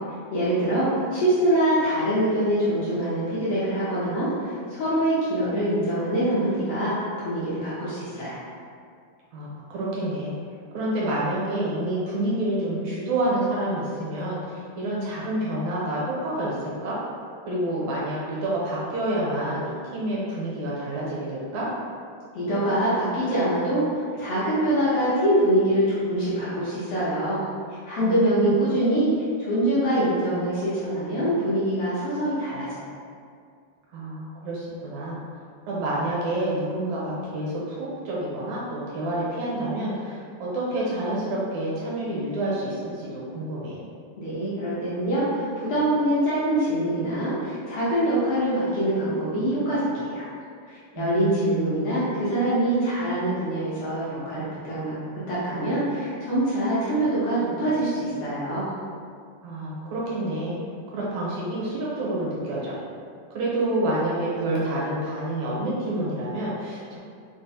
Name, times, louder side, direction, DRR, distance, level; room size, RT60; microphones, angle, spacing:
voice 1, 0.3-8.4 22.3-27.4 27.9-29.1 29.4-32.7 44.2-50.2 50.7-54.9 55.3-58.6, right 1 dB, 75° left, -10 dB, 1.4 m, -24 dB
voice 2, 9.3-10.3 10.7-17.0 17.5-21.7 28.0-28.5 33.9-35.2 35.7-43.8 51.0-51.7 59.4-60.6 60.9-62.7 63.3-67.0, right 1 dB, 80° right, -6 dB, 2.0 m, -28 dB
4.6 x 2.1 x 2.6 m, 2.2 s
omnidirectional pair, 3.3 m